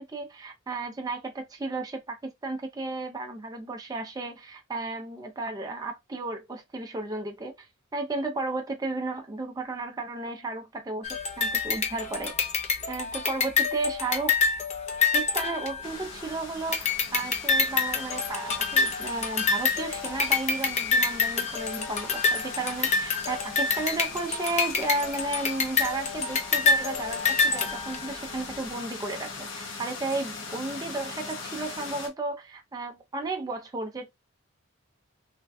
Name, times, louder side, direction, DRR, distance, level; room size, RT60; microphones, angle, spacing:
voice 1, 0.0-12.3 12.9-14.4 15.1-34.1, right 3 dB, 20° right, 0.4 m, -33 dB
sound 1, 11.0-16.3 16.7-28.3, left 5 dB, 35° left, 0.5 m, -27 dB
sound 2, 15.8-32.1, left 4 dB, 65° left, 0.9 m, -41 dB
3.2 x 2.2 x 2.5 m
head